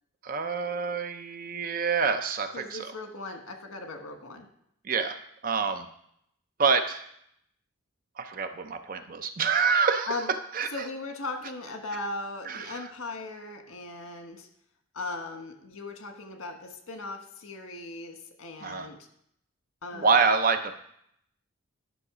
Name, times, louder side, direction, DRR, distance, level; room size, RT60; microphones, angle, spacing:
voice 1, 0.2-2.9 4.8-5.2 5.4-5.9 6.6-7.0 8.2-10.2 10.5-10.7 12.5-12.8 18.6-18.9 20.0-20.7, right 5 dB, 40° right, 8 dB, 0.5 m, -26 dB
voice 2, 2.5-4.5 10.1-10.3 10.7-14.5 14.9-19.0 19.8-20.2, left 2 dB, 85° left, 5 dB, 1.4 m, -38 dB
11.0 x 5.9 x 4.9 m, 0.73 s
head